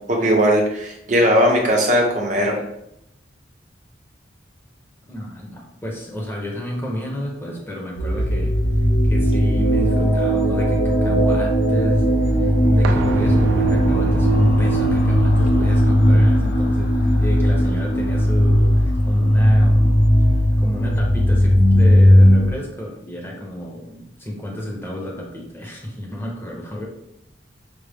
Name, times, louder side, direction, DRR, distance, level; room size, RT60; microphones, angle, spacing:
voice 1, 0.1-2.6, equal, 40° right, 0 dB, 0.8 m, -18 dB
voice 2, 5.1-8.5 9.1-20.0 20.6-26.9, left 1 dB, 10° left, -2 dB, 0.8 m, -31 dB
sound 1, 8.0-22.5, equal, 55° left, 0.7 m, -17 dB
sound 2, 12.8-18.5 18.8-18.9, right 1 dB, 85° right, 0.4 m, -29 dB
5.0 x 2.0 x 3.4 m, 0.79 s
head